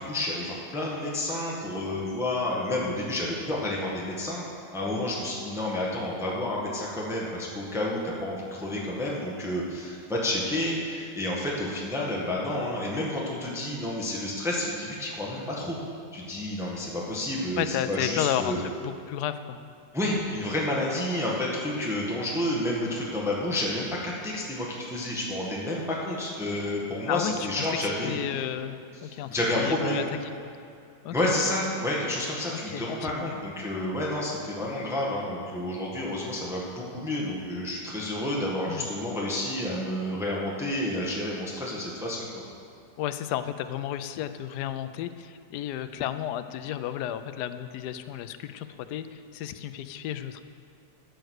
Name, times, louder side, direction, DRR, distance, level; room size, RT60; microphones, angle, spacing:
voice 1, 0.0-4.4 4.7-15.8 16.1-18.6 19.9-28.1 29.0-30.0 31.1-42.4, left 1 dB, ahead, -4 dB, 1.4 m, -30 dB
voice 2, 17.6-19.6 27.1-29.3 29.6-30.0 31.0-31.3 32.5-33.3 38.4-38.9 43.0-50.4, left 11 dB, 75° left, 10 dB, 1.1 m, -33 dB
14.0 x 6.5 x 6.4 m, 2.5 s
omnidirectional pair, 1.9 m